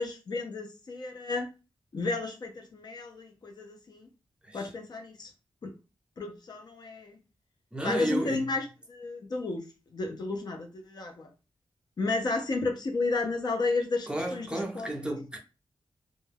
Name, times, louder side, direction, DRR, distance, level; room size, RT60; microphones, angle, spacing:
voice 1, 0.0-1.5 1.9-4.1 4.5-5.3 5.6-5.7 6.2-7.2 7.8-9.6 9.9-11.3 12.0-14.9, left 3 dB, 50° left, 0.5 m, -32 dB
voice 2, 7.7-8.5 14.1-15.4, right 1 dB, 10° right, 0.5 m, -32 dB
2.2 x 2.1 x 3.2 m
wide cardioid pair, 145°, 9 cm